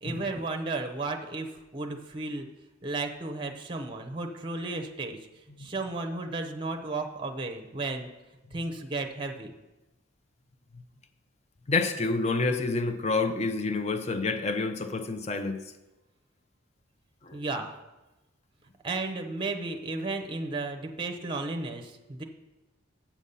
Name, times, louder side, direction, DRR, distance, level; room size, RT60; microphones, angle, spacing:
voice 1, 0.0-2.5 2.8-5.3 5.6-8.1 8.5-9.5 17.3-17.8 18.8-22.2, right 3 dB, 25° right, 5 dB, 0.7 m, -34 dB
voice 2, 11.7-15.6 17.2-17.4, left 3 dB, 30° left, 8 dB, 0.5 m, -28 dB
7.2 x 7.0 x 5.4 m, 1.1 s
head